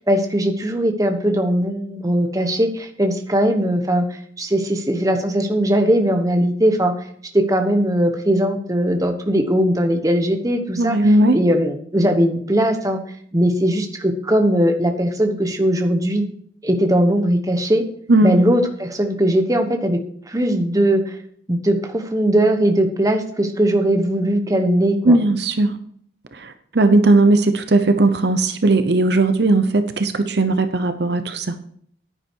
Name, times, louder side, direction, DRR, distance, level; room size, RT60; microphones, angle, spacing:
voice 1, 0.1-6.9 7.3-13.0 13.3-16.2 16.6-17.8 18.2-20.0 20.3-21.0 21.5-25.2, right 1 dB, 15° right, 5 dB, 1.1 m, -19 dB
voice 2, 10.8-11.4 18.1-18.4 25.1-25.8 26.4-31.5, right 2 dB, 55° right, 9 dB, 0.8 m, -17 dB
9.9 x 9.9 x 4.6 m, 0.62 s
head